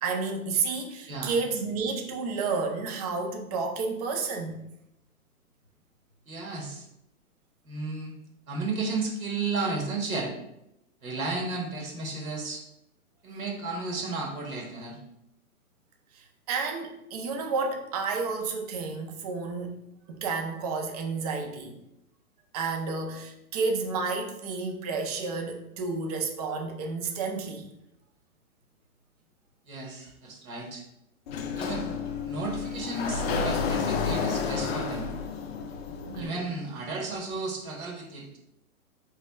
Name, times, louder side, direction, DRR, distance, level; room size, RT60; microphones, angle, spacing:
voice 1, 0.0-4.5 16.1-19.8 20.1-21.8 22.5-27.7 36.0-36.4, right 4 dB, 30° right, 3 dB, 0.4 m, -31 dB
voice 2, 1.1-1.4 6.3-6.8 7.6-8.2 8.5-10.3 11.0-12.6 13.2-15.0 29.7-30.8 31.5-31.9 32.2-35.1 36.1-38.4, right 3 dB, 75° right, 0 dB, 1.3 m, -33 dB
Sliding door, 31.3-36.3, left 5 dB, 45° left, 0.5 m, -30 dB
4.1 x 3.2 x 2.2 m, 0.82 s
hypercardioid pair, 125°, 43 cm